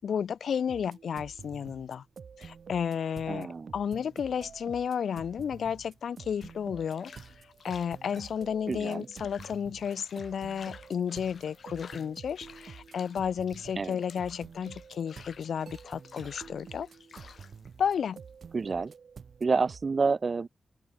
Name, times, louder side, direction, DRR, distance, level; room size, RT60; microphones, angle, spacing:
voice 1, 0.0-2.0 2.4-3.5 3.7-7.1 7.6-16.9 17.8-18.2, left 7 dB, 85° left, 1.1 m, -32 dB
sound 1, 0.7-19.9, right 6 dB, 70° right, 5.3 m, -49 dB
voice 2, 3.3-3.7 8.7-9.1 13.8-14.0 18.5-18.9 19.4-20.5, right 4 dB, 50° right, 0.4 m, -28 dB
sound 2, 4.2-18.9, left 6 dB, 70° left, 6.8 m, -54 dB
cardioid pair, 85°, 0 cm